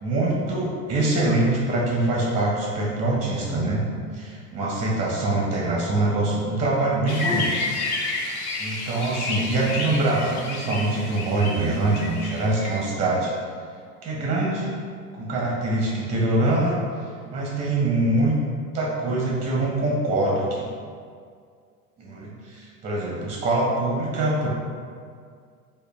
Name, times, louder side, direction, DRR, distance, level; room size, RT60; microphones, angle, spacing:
voice 1, 0.0-3.8 4.1-7.5 7.9-8.0 8.6-13.3 14.0-14.8 15.1-16.7 17.3-18.4 18.7-20.7 22.0-24.5, right 2 dB, 15° right, -4 dB, 0.5 m, -24 dB
sound 1, 7.1-12.8, left 3 dB, 70° left, 0.7 m, -30 dB
4.8 x 2.2 x 2.3 m, 2.1 s
hypercardioid pair, 95°, 47 cm